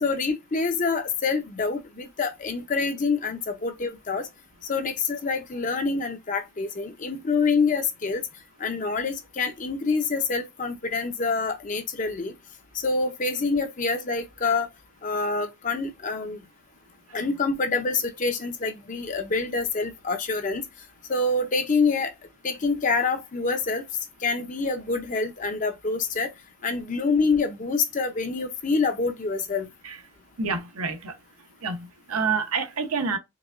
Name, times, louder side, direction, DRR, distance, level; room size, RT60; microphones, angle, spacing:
voice 1, 0.0-4.3 4.7-8.2 8.6-12.3 12.7-14.7 15.0-16.4 17.1-20.6 21.1-22.1 22.4-23.8 24.2-26.3 26.6-29.7, left 4 dB, 35° left, 0.6 m, -26 dB
voice 2, 30.4-31.1 31.6-33.2, right 5 dB, 85° right, 0.8 m, -28 dB
4.7 x 2.2 x 2.4 m
head